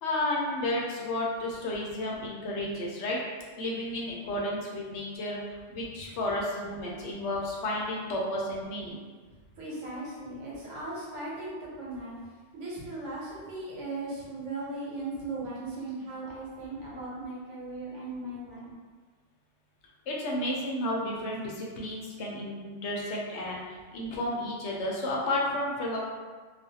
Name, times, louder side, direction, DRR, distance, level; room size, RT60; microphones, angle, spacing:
voice 1, 0.0-3.2 3.6-9.0 20.1-26.0, left 1 dB, 70° left, -3 dB, 0.8 m, -32 dB
voice 2, 9.5-12.2 12.5-18.8, right 2 dB, 80° right, -6 dB, 1.1 m, -38 dB
2.4 x 2.1 x 2.7 m, 1.4 s
omnidirectional pair, 1.2 m